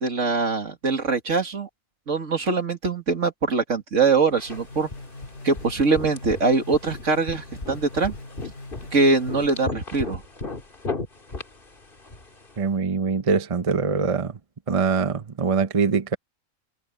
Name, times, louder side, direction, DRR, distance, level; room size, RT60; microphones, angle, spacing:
voice 1, 0.0-1.7 2.1-4.9 5.4-8.1 8.9-10.2, right 4 dB, 70° right, 2.6 m, -23 dB
sound 1, 4.4-12.6, left 3 dB, 45° left, 2.5 m, -36 dB
sound 2, 4.5-9.6, left 2 dB, 80° left, 4.2 m, -42 dB
voice 2, 12.6-14.4 14.7-16.2, right 5 dB, 30° right, 0.9 m, -23 dB
omnidirectional pair, 1.3 m